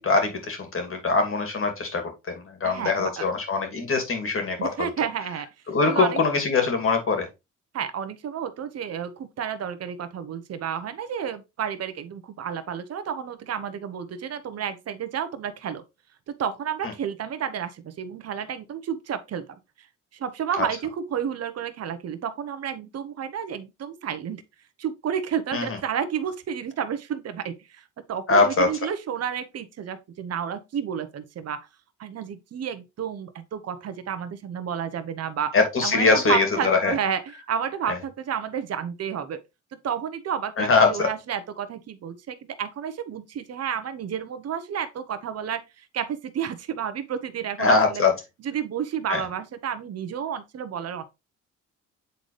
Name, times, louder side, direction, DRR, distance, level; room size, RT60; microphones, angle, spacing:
voice 1, 0.0-4.9 5.7-7.3 20.6-20.7 25.5-25.8 28.3-28.7 35.5-36.9 37.9-38.0 40.6-41.1 47.6-48.1 49.1-49.2, left 4 dB, 45° left, 2.5 m, -22 dB
voice 2, 2.6-3.3 4.6-5.5 5.8-6.2 7.7-15.8 16.3-19.9 20.1-24.4 24.8-31.6 32.0-35.6 35.8-39.4 39.7-48.0 48.4-51.0, right 8 dB, 55° right, 1.0 m, -31 dB
8.2 x 4.0 x 3.2 m
cardioid pair, 90°, 30 cm